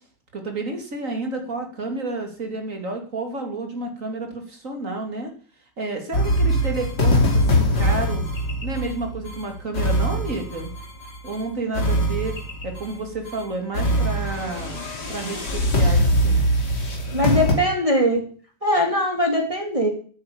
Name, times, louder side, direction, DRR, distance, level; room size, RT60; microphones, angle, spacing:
voice 1, 0.3-5.3 5.8-8.2 8.6-10.7 11.2-12.3 12.6-14.8 15.1-16.4, right 2 dB, 45° right, 4 dB, 3.2 m, -30 dB
sound 1, 6.1-11.4 11.7-12.9 13.2-13.4 13.7-17.5, equal, 65° left, 3.3 m, -22 dB
voice 2, 17.1-18.2 18.6-19.9, equal, 20° right, 1 dB, 2.8 m, -21 dB
9.7 x 9.5 x 8.7 m, 0.43 s
omnidirectional pair, 2.0 m